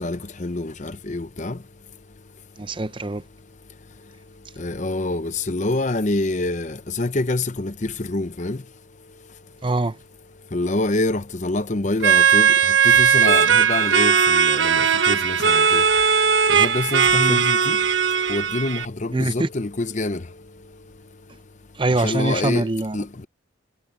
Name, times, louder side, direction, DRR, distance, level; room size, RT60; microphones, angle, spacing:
voice 1, 0.0-1.5 4.6-8.6 10.5-12.5 12.8-15.8 16.5-17.8 18.3-20.2 22.0-22.6 22.9-23.3, left 2 dB, 40° left, 0.8 m, -26 dB
voice 2, 2.6-3.2 9.6-9.9 17.2-17.4 19.1-19.5 21.8-23.0, right 2 dB, 25° right, 0.6 m, -23 dB
sound 1, 12.0-18.8, right 7 dB, 75° right, 1.3 m, -18 dB
head